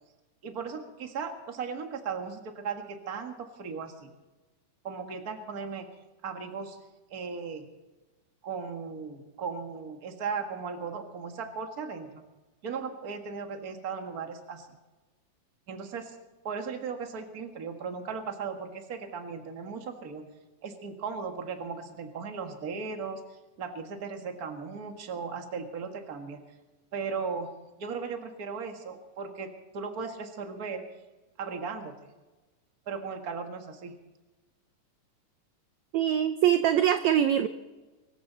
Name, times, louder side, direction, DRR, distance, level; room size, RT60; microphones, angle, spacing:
voice 1, 0.4-4.1 4.8-5.9 6.2-6.8 7.1-7.7 8.4-12.2 12.6-14.7 15.7-16.2 16.4-20.3 20.6-23.2 23.6-26.4 26.9-27.5 27.8-30.8 31.4-31.9 32.9-33.9, right 5 dB, 35° right, 4 dB, 1.6 m, -37 dB
voice 2, 35.9-37.5, right 10 dB, 75° right, 9 dB, 1.7 m, -23 dB
24.0 x 13.5 x 4.0 m, 1.1 s
omnidirectional pair, 3.8 m